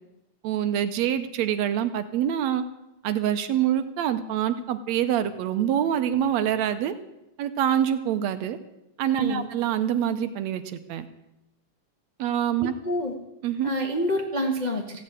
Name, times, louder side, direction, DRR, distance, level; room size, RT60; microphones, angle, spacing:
voice 1, 0.4-2.6 3.0-6.9 7.4-8.6 9.0-11.1 12.2-12.7 13.4-13.7, right 10 dB, 75° right, 10 dB, 1.9 m, -25 dB
voice 2, 12.6-13.1 13.6-15.0, equal, 60° left, 1 dB, 0.4 m, -28 dB
15.5 x 7.8 x 8.9 m, 0.91 s
omnidirectional pair, 3.4 m